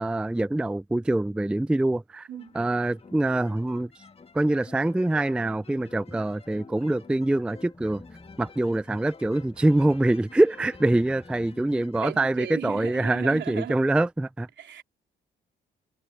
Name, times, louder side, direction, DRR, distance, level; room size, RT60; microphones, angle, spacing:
voice 1, 0.0-2.3 2.5-3.9 4.3-8.0 8.4-14.5, right 2 dB, 5° right, 0.3 m, -24 dB
sound 1, 2.3-12.2, left 4 dB, 30° left, 1.6 m, -50 dB
sound 2, 7.7-12.2, left 2 dB, 15° left, 3.6 m, -53 dB
voice 2, 12.0-13.7 14.6-14.8, right 10 dB, 70° right, 3.2 m, -36 dB
cardioid pair, 90°, 20 cm